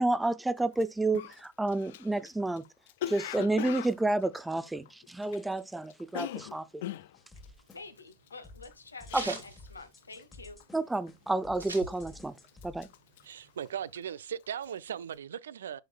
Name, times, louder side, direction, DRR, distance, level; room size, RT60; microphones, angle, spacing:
voice 1, 0.0-2.6 3.1-6.8 9.1-9.3 10.7-12.4 12.6-12.9, right 2 dB, 5° right, 0.5 m, -30 dB
Cough, 0.7-0.8 1.1-5.6 5.8-9.7 10.0-10.3 10.6-11.1 11.5-12.1 12.4-14.1 14.4-14.7, left 12 dB, 55° left, 0.4 m, -41 dB
sound 1, 7.1-8.1 8.4-13.0, left 2 dB, 15° left, 1.4 m, -52 dB
sound 2, 7.4-10.6 10.9-11.0 11.2-12.4 12.8-13.9, right 3 dB, 85° right, 2.9 m, -43 dB
voice 2, 7.7-10.6, left 3 dB, 75° left, 1.2 m, -48 dB
voice 3, 13.2-15.8, right 9 dB, 65° right, 0.4 m, -38 dB
7.8 x 6.3 x 2.2 m
figure-of-eight pair, 90°, 0 cm